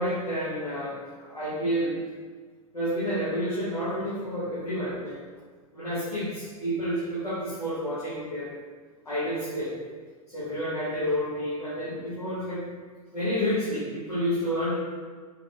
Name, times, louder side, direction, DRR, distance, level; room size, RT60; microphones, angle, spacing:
voice 1, 0.0-2.0 2.7-5.2 5.7-8.5 9.0-9.8 10.3-12.7 13.1-14.8, equal, 90° left, -10 dB, 1.3 m, -29 dB
5.1 x 3.6 x 2.5 m, 1.5 s
figure-of-eight pair, 90°, 19 cm